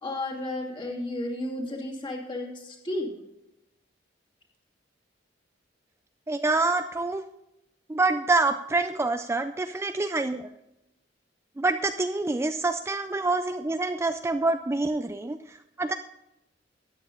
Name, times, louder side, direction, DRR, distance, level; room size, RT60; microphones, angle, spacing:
voice 1, 0.0-3.1, left 1 dB, 25° left, 0 dB, 2.4 m, -33 dB
voice 2, 6.3-7.3 7.9-10.5 11.6-15.9, right 3 dB, 15° right, 8 dB, 0.3 m, -26 dB
13.5 x 9.0 x 3.8 m, 0.89 s
head